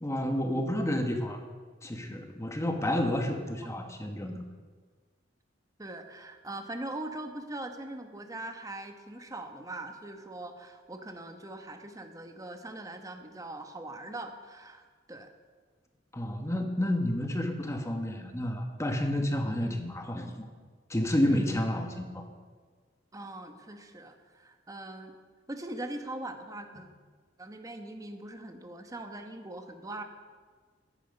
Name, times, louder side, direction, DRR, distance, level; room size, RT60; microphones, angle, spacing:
voice 1, 0.0-1.4 1.8-4.4 16.1-20.5 20.9-22.2, left 1 dB, 15° left, 4 dB, 1.3 m, -30 dB
voice 2, 5.8-15.3 19.6-19.9 21.2-21.5 23.1-25.1 25.5-26.9 27.4-30.0, right 2 dB, 20° right, 6 dB, 1.1 m, -41 dB
14.5 x 10.0 x 5.4 m, 1.5 s
head